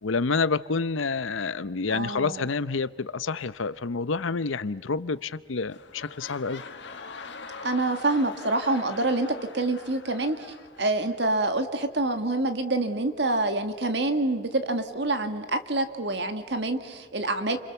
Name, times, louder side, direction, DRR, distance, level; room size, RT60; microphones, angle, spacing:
voice 1, 0.0-6.6, left 4 dB, 80° left, 16 dB, 0.7 m, -28 dB
voice 2, 1.9-2.5 7.6-17.6, right 2 dB, 60° right, 8 dB, 2.0 m, -27 dB
sound 1, 5.1-5.4 5.6-11.5 12.2-12.3, left 4 dB, 65° left, 1.8 m, -43 dB
29.5 x 27.0 x 7.0 m, 1.5 s
head